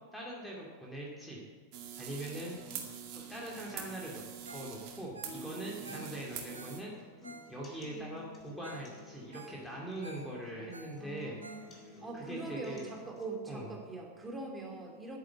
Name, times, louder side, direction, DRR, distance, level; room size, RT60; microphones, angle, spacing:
voice 1, 0.1-1.4 2.0-2.5 3.1-6.9 7.5-12.9 13.5-13.7, right 1 dB, 5° left, -4 dB, 2.4 m, -42 dB
Jacob's ladder (electricity), 1.7-6.8, right 8 dB, 40° right, 2.1 m, -45 dB
Ringtone, 4.4-4.7 5.0-7.9 8.3-8.4 8.6-8.9 9.2-12.1 12.5-12.6, right 2 dB, 80° right, 1.4 m, -52 dB
sound 1, 5.2-13.2, equal, 20° left, 3.0 m, -53 dB
voice 2, 11.0-15.2, right 3 dB, 10° right, 0 dB, 2.7 m, -43 dB
11.0 x 10.5 x 7.4 m, 1.5 s
figure-of-eight pair, 90°, 0 cm